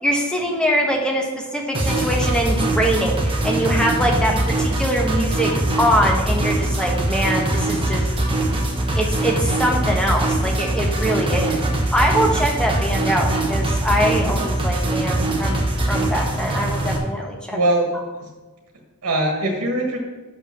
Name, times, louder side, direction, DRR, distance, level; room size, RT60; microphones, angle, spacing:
voice 1, 0.0-5.5 5.8-8.0 8.9-11.6 11.9-17.6, equal, 5° left, 0 dB, 1.1 m, -23 dB
sound 1, 1.7-17.0, right 1 dB, 25° right, 1.1 m, -22 dB
voice 2, 4.0-4.4 11.3-11.4 14.2-14.5 15.1-15.4 17.5-17.9 19.0-20.0, right 1 dB, 75° right, 1 dB, 1.4 m, -23 dB
6.4 x 5.4 x 5.8 m, 1.3 s
head